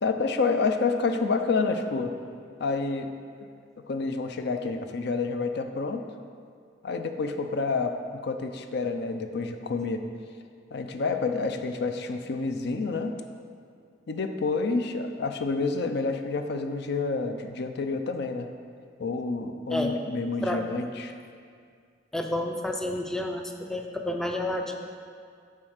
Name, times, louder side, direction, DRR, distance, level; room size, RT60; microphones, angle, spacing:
voice 1, 0.0-2.1 2.6-3.1 3.9-6.1 6.8-10.0 10.7-13.2 14.1-18.5 19.0-21.1, left 4 dB, 65° left, 7 dB, 0.5 m, -28 dB
voice 2, 22.1-24.7, left 1 dB, 5° left, 3 dB, 0.4 m, -30 dB
7.3 x 4.4 x 6.5 m, 2.2 s
head